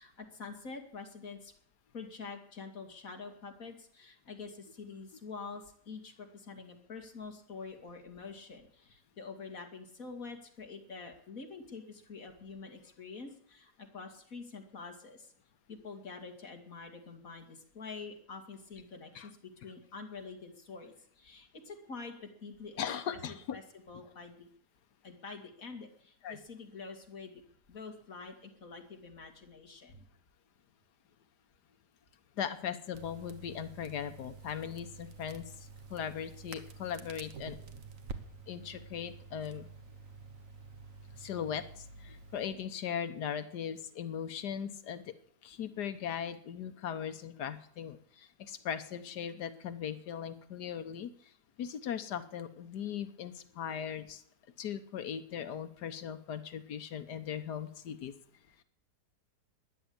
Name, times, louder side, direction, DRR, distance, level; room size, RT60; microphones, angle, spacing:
voice 1, 0.0-1.5 1.9-15.3 15.7-22.8 23.1-23.6 23.9-24.5 25.0-27.4 27.7-30.1, left 4 dB, 55° left, 3 dB, 2.7 m, -46 dB
voice 2, 22.8-23.6 26.2-26.4 32.4-37.6 38.5-39.7 41.2-45.1 45.4-51.3 51.6-54.2 54.6-58.1, left 8 dB, 85° left, 10 dB, 1.6 m, -39 dB
Crackle, 32.9-42.5, right 4 dB, 55° right, 1.6 m, -49 dB
13.5 x 10.5 x 8.7 m, 0.64 s
omnidirectional pair, 1.7 m